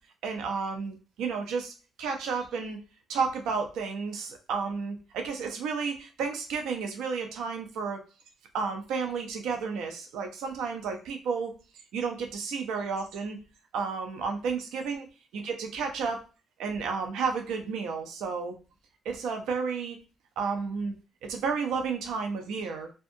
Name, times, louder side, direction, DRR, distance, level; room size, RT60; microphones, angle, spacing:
voice 1, 0.2-2.8 3.1-8.0 8.5-11.5 11.9-13.4 13.7-15.1 15.3-16.2 16.6-18.5 19.0-20.0 20.4-20.9 21.3-22.9, right 5 dB, 85° right, 4 dB, 0.4 m, -32 dB
2.6 x 2.3 x 2.5 m, 0.33 s
cardioid pair, 90°, 0 cm